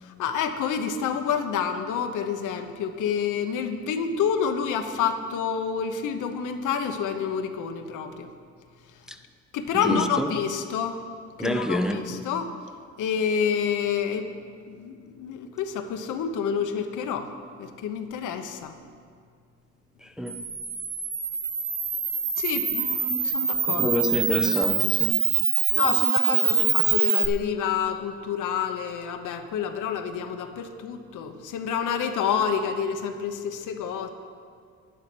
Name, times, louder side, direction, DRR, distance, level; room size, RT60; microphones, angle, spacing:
voice 1, 0.0-8.3 9.5-11.0 11.4-12.5 13.0-14.3 14.7-17.3 17.6-18.8 22.4-23.9 25.7-34.1, left 7 dB, 80° left, 1.1 m, -28 dB
voice 2, 9.8-10.3 11.4-12.3 20.0-20.5 23.7-25.3, equal, ahead, 0.6 m, -28 dB
Camera, 20.3-27.3, right 7 dB, 55° right, 1.5 m, -24 dB
10.5 x 10.5 x 6.1 m
cardioid pair, 90°, 30 cm